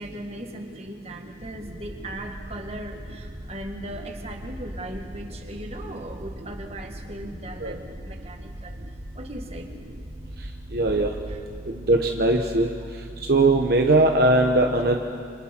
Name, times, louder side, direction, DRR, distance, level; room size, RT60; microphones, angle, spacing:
voice 1, 0.0-8.8 9.1-9.7 11.3-11.4 12.8-12.9, right 1 dB, 35° right, 3 dB, 1.8 m, -38 dB
sound 1, 1.4-11.4, equal, 85° right, 2.7 m, -40 dB
voice 2, 10.7-11.1 11.9-12.7 13.3-15.0, right 2 dB, 60° right, 3 dB, 1.1 m, -19 dB
27.5 x 26.5 x 4.5 m, 2.3 s
head